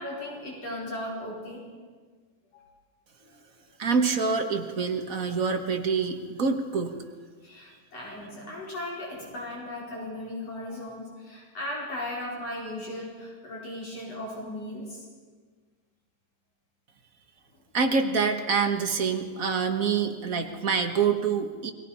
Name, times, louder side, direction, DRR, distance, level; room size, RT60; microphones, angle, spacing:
voice 1, 0.0-1.6 2.5-2.6 7.4-15.0, left 1 dB, 55° left, -3 dB, 5.7 m, -37 dB
voice 2, 3.8-7.0 17.7-21.7, right 5 dB, 40° right, 4 dB, 1.3 m, -26 dB
29.5 x 22.0 x 5.7 m, 1.5 s
omnidirectional pair, 3.3 m